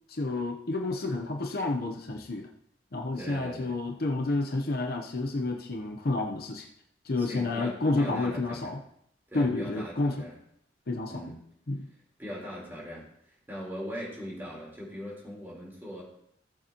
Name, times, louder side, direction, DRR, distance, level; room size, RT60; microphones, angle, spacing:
voice 1, 0.1-2.5 2.9-6.7 7.0-8.8 9.3-10.3 10.9-11.3 11.7-11.9, left 2 dB, 55° left, 3 dB, 0.8 m, -30 dB
voice 2, 3.1-3.8 7.2-8.7 9.3-10.4 11.1-11.4 12.2-16.0, equal, 10° right, -5 dB, 3.7 m, -40 dB
16.5 x 7.0 x 2.9 m, 0.71 s
head